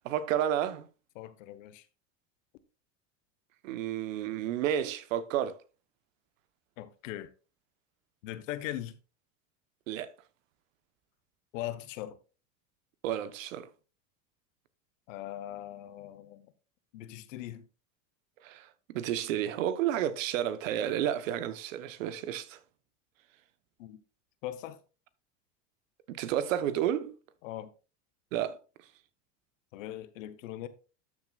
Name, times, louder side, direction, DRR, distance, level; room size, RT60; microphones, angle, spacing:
voice 1, 0.0-0.9 3.6-5.6 9.9-10.1 13.0-13.7 18.4-22.6 26.1-27.2 28.3-28.6, right 10 dB, 85° right, 1.1 m, -31 dB
voice 2, 1.1-1.9 6.8-7.3 8.2-9.0 11.5-12.2 15.1-16.5 16.9-17.6 23.8-24.0 24.4-24.8 27.4-27.7 29.7-30.7, left 13 dB, 80° left, 1.2 m, -40 dB
13.0 x 7.1 x 2.4 m
supercardioid pair, 120°, 38 cm